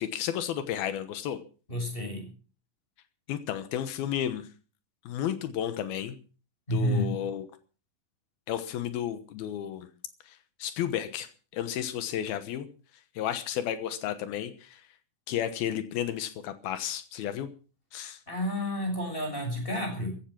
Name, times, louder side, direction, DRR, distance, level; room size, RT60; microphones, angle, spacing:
voice 1, 0.0-1.4 3.3-4.5 5.1-6.2 6.7-7.5 8.5-9.9 10.3-12.7 13.2-14.8 15.3-17.5 17.9-18.2, left 10 dB, 85° left, 11 dB, 3.1 m, -32 dB
voice 2, 1.7-2.3 6.7-7.2 18.3-20.2, equal, 15° left, 4 dB, 6.5 m, -30 dB
15.5 x 14.0 x 6.2 m, 0.38 s
omnidirectional pair, 4.3 m